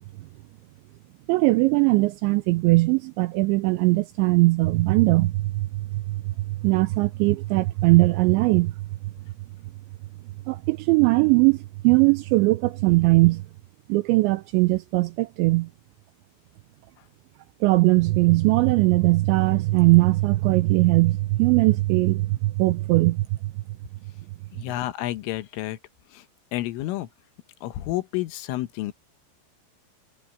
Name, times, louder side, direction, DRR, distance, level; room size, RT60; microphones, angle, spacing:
voice 1, 1.3-8.7 10.5-13.4 13.9-15.7 17.6-23.5, right 21 dB, 90° right, 2.6 m, -20 dB
voice 2, 24.5-25.8 26.1-26.2 26.5-27.1 27.6-28.9, left 15 dB, 80° left, 3.6 m, -30 dB
omnidirectional pair, 5.8 m